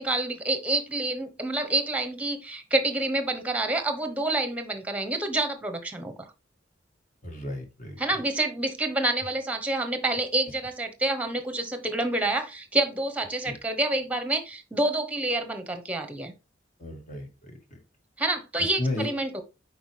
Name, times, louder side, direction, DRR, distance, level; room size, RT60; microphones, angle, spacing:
voice 1, 0.0-6.3 8.0-16.3 18.2-19.4, right 2 dB, 10° right, 8 dB, 1.0 m, -28 dB
voice 2, 7.2-8.0 13.4-13.5 16.8-17.8 18.8-19.1, left 1 dB, 45° left, 3 dB, 2.1 m, -33 dB
7.9 x 5.1 x 3.3 m, 0.28 s
head